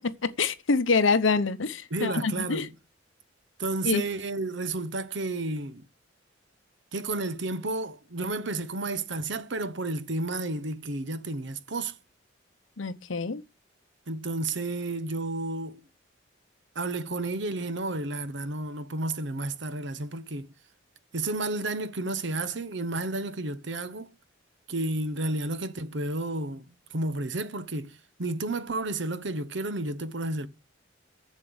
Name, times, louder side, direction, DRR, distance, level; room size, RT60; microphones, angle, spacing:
voice 1, 0.2-2.7 3.8-4.0 12.8-13.4, left 4 dB, 85° left, 0.9 m, -26 dB
voice 2, 1.9-2.7 3.6-5.8 6.9-12.0 14.1-15.8 16.7-20.5 21.1-24.1 24.7-30.5, right 2 dB, 65° right, 0.9 m, -31 dB
7.5 x 7.4 x 7.9 m
head